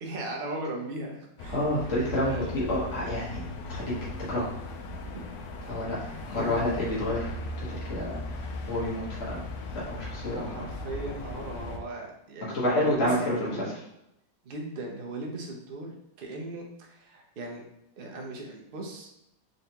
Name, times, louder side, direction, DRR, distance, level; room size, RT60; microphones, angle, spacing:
voice 1, 0.0-1.6 2.2-2.6 5.1-5.2 6.3-6.6 10.3-13.1 13.4-13.7 14.4-17.6 18.0-19.1, right 2 dB, 50° right, 0 dB, 0.6 m, -38 dB
sound 1, 1.4-11.8, left 2 dB, 70° left, 1.0 m, -38 dB
voice 2, 1.5-3.4 3.7-3.9 4.3-4.5 5.7-6.0 6.2-9.4 9.7-10.5 12.5-13.8, left 1 dB, 50° left, -7 dB, 1.5 m, -29 dB
3.9 x 3.3 x 2.8 m, 0.84 s
omnidirectional pair, 1.8 m